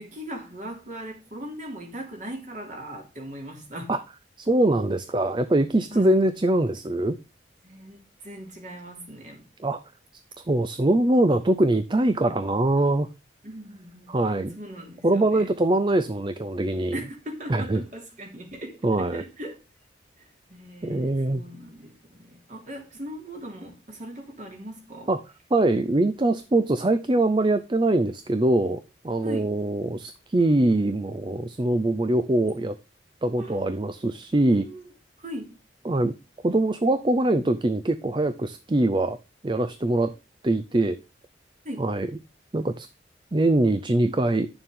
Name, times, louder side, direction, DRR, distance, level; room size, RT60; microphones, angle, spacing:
voice 1, 0.0-3.9 5.9-6.2 7.6-9.5 13.4-14.1 14.5-15.5 16.9-19.6 20.2-25.1 29.2-29.5 33.4-33.6 34.5-34.9 35.2-35.5 41.6-41.8, equal, 40° right, 2.9 m, -39 dB
voice 2, 4.4-7.2 9.6-9.8 10.5-13.1 14.1-14.6 15.0-17.0 17.5-17.8 18.8-19.2 20.8-21.4 25.1-25.2 25.5-32.8 33.2-34.7 35.8-36.1 36.4-39.2 39.4-40.1 40.4-41.0 41.8-42.1 42.5-42.9 43.3-44.5, right 2 dB, 25° right, 0.5 m, -23 dB
10.5 x 7.0 x 3.7 m
head